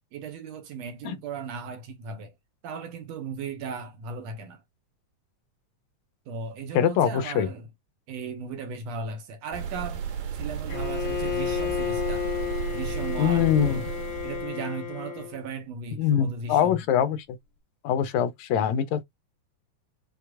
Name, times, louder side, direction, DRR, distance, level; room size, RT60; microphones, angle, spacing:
voice 1, 0.1-2.3 2.6-4.6 6.3-7.7 8.1-10.0 10.3-12.3 12.7-13.9 14.2-16.8, right 5 dB, 70° right, 1.8 m, -36 dB
voice 2, 6.7-7.5 13.2-13.8 16.0-17.2 17.8-19.0, left 9 dB, 80° left, 2.0 m, -23 dB
sound 1, 9.5-14.5, right 7 dB, 85° right, 2.4 m, -33 dB
Bowed string instrument, 10.7-15.4, left 10 dB, 50° left, 1.8 m, -32 dB
6.2 x 2.9 x 2.3 m
omnidirectional pair, 3.4 m